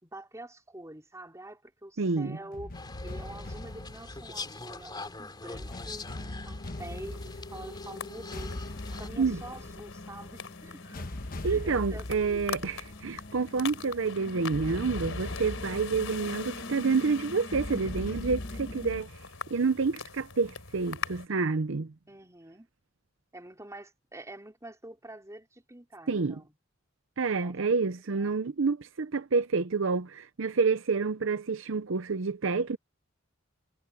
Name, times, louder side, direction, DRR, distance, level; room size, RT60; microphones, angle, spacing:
voice 1, 0.0-2.7 3.0-8.6 9.0-11.1 11.4-12.6 22.1-22.7 23.3-26.5 27.4-28.4, right 1 dB, 15° right, 4.3 m, -46 dB
sound 1, 2.0-19.0, left 1 dB, 45° left, 1.1 m, -40 dB
voice 2, 2.0-2.4 9.2-9.4 11.4-19.1 19.5-21.9 26.1-26.4 27.2-32.8, right 4 dB, 65° right, 0.7 m, -28 dB
sound 2, 2.7-9.1, left 3 dB, 20° left, 3.6 m, -44 dB
sound 3, 6.8-21.3, left 5 dB, 80° left, 4.2 m, -43 dB
head